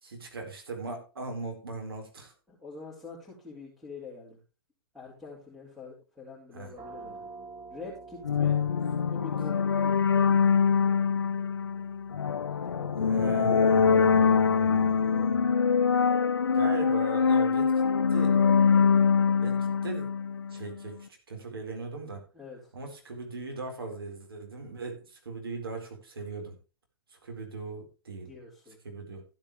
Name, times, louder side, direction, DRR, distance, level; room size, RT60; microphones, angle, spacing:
voice 1, 0.0-2.3 6.5-6.7 12.9-15.6 16.5-17.8 18.1-18.4 19.4-20.1 20.5-22.2 22.7-26.6 27.1-28.3 28.8-29.2, right 3 dB, 80° right, 3 dB, 4.2 m, -38 dB
voice 2, 2.5-4.4 4.9-7.3 7.7-8.6 9.1-9.7 12.5-13.5 22.3-22.7 28.2-28.8, left 3 dB, 5° right, -3 dB, 4.4 m, -45 dB
sound 1, 6.7-18.2, right 4 dB, 30° right, 2.6 m, -52 dB
sound 2, 8.2-20.8, left 6 dB, 85° left, 0.6 m, -24 dB
15.0 x 8.8 x 3.2 m, 0.33 s
hypercardioid pair, 115°, 12 cm